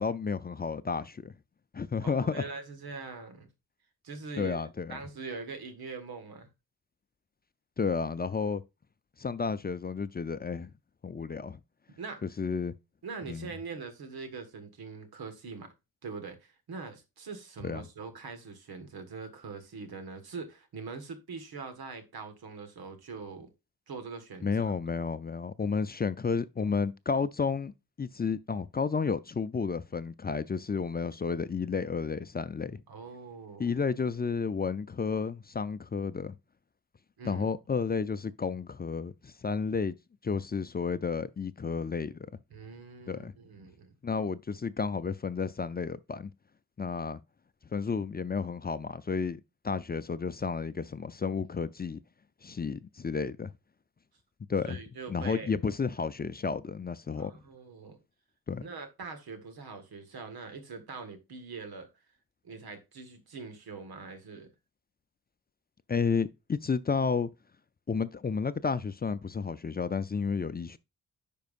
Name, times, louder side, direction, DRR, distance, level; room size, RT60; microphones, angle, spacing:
voice 1, 0.0-1.3 1.7-2.4 4.4-5.0 7.8-8.6 9.2-10.7 11.0-11.6 12.2-12.7 13.3-13.5 17.6-17.8 24.4-27.7 28.0-32.8 33.6-36.4 37.2-40.0 40.2-42.2 43.1-43.3 44.0-46.3 46.8-47.2 47.7-49.4 49.6-52.0 52.4-53.5 54.5-54.8 55.1-57.3 58.5-58.6 65.9-67.3 67.9-70.8, left 5 dB, 25° left, 0.5 m, -31 dB
voice 2, 2.0-3.5 4.0-6.5 12.0-12.2 13.0-15.7 16.0-23.5 23.9-24.7 32.9-33.8 37.2-37.5 42.5-43.9 54.6-55.5 57.2-58.0 58.6-61.9 62.4-64.5, right 4 dB, 80° right, 1.6 m, -43 dB
10.5 x 4.7 x 2.5 m
cardioid pair, 55°, 37 cm